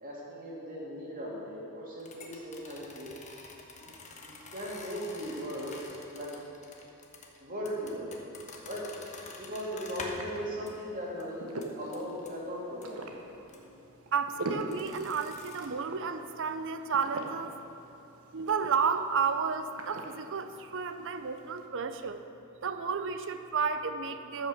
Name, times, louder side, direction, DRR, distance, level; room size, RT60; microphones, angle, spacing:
voice 1, 0.0-3.1 3.8-3.9 4.2-5.8 6.1-6.3 7.4-8.1 8.6-8.9 9.4-11.5 11.8-13.1, equal, 40° right, -5 dB, 2.8 m, -38 dB
sound 1, 2.0-10.4 10.7-10.8 11.2-11.3 11.6-12.3 12.8-12.9 13.5-13.6 14.7-15.7, left 3 dB, 35° left, 1.2 m, -47 dB
sound 2, 8.8-21.7, right 2 dB, 75° right, 1.1 m, -45 dB
voice 2, 14.1-17.6 18.3-22.2 22.6-24.5, right 5 dB, 60° right, 9 dB, 0.6 m, -32 dB
13.5 x 6.2 x 6.5 m, 2.9 s
head